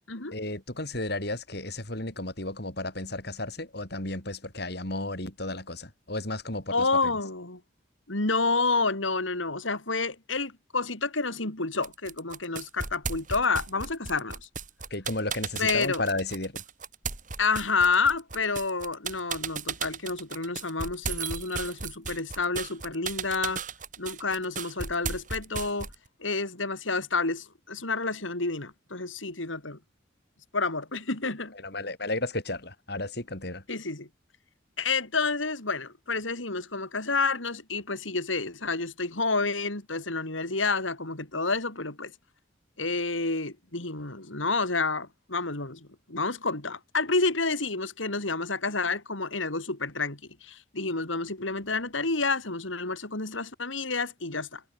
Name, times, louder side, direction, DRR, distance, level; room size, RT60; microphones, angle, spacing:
voice 1, 0.3-7.1 14.9-16.6 31.6-33.6, left 2 dB, 55° left, 5.4 m, -33 dB
voice 2, 6.7-7.6 8.1-14.4 15.6-16.0 17.4-23.6 24.0-25.9 26.2-29.8 30.5-31.5 33.7-34.1 34.8-42.1 42.8-54.6, left 3 dB, 90° left, 4.3 m, -29 dB
sound 1, 11.8-26.1, right 5 dB, 40° right, 6.5 m, -35 dB
head